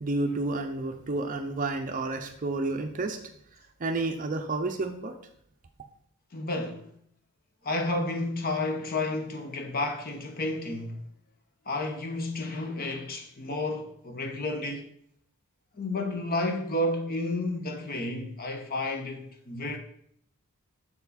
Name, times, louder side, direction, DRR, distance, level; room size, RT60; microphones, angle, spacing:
voice 1, 0.0-3.2 3.8-5.1, right 2 dB, 35° right, 0.5 m, -30 dB
voice 2, 6.3-6.9 7.6-11.0 11.7-14.8 15.7-19.8, left 2 dB, 40° left, 0.9 m, -31 dB
7.0 x 4.6 x 4.1 m
head